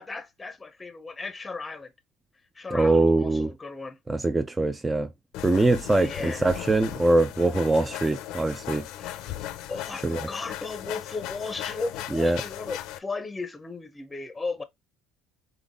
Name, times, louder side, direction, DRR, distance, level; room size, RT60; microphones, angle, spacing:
voice 1, 0.0-1.9 2.5-4.0 6.0-6.5 9.0-9.2 9.7-14.6, left 3 dB, 15° left, 0.7 m, -36 dB
voice 2, 2.7-3.5 4.1-5.1 5.4-8.9 10.0-10.3 12.1-12.4, right 2 dB, 15° right, 0.4 m, -23 dB
sound 1, 5.3-13.0, left 13 dB, 70° left, 0.6 m, -37 dB
3.8 x 3.5 x 3.6 m
supercardioid pair, 95°, 0 cm